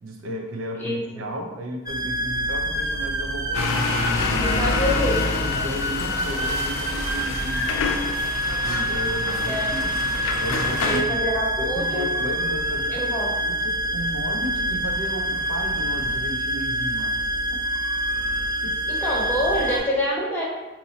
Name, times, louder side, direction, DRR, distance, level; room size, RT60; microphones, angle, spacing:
voice 1, 0.0-4.0 4.3-4.7 5.4-8.1 8.6-9.9 10.4-11.2 11.6-17.2 17.5-17.6 18.6-18.8, equal, 90° right, 1 dB, 0.6 m, -34 dB
sound 1, 1.9-19.8, equal, 20° right, 0.4 m, -26 dB
sound 2, 3.5-11.0, left 3 dB, 85° left, 0.4 m, -27 dB
voice 2, 4.4-5.2 9.5-9.7 10.8-12.1 12.9-13.4 18.9-20.4, equal, 10° left, -5 dB, 0.7 m, -26 dB
4.0 x 2.6 x 2.8 m, 1.1 s
head